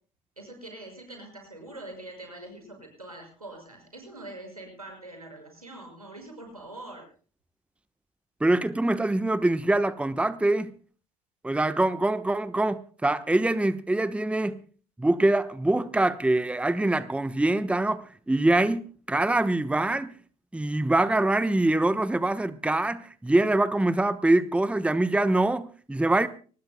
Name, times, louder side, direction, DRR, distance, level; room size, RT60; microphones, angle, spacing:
voice 1, 0.4-7.1, right 2 dB, 90° right, 6.1 m, -43 dB
voice 2, 8.4-10.7 11.4-14.6 15.0-20.1 20.5-26.3, right 2 dB, 5° right, 1.1 m, -24 dB
24.0 x 20.5 x 2.2 m
figure-of-eight pair, 55°, 18 cm